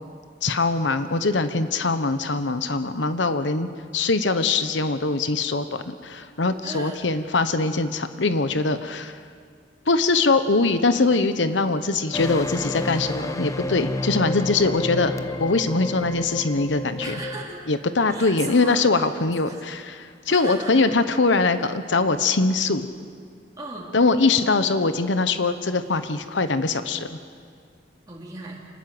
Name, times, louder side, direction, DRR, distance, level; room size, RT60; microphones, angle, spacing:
voice 1, 0.4-9.1 9.9-17.2 17.7-22.9 23.9-27.2, left 3 dB, 85° left, 10 dB, 1.0 m, -22 dB
voice 2, 6.6-7.0 17.0-17.6 18.1-19.1 19.4-19.6 20.3-20.8 23.6-24.0 28.1-28.6, right 2 dB, 20° right, -3 dB, 3.4 m, -37 dB
sound 1, 12.1-17.4, left 2 dB, 20° left, 0.9 m, -30 dB
26.0 x 19.5 x 7.8 m, 2.2 s
head